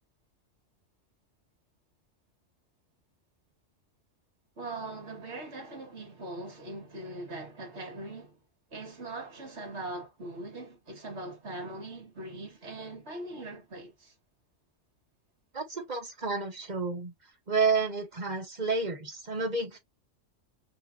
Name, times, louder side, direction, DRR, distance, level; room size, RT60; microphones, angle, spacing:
voice 1, 4.6-8.4 8.7-14.1, right 2 dB, 60° right, 2.2 m, -41 dB
voice 2, 15.5-17.1 17.5-19.8, right 4 dB, 35° right, 1.5 m, -30 dB
6.0 x 2.5 x 2.7 m
omnidirectional pair, 1.3 m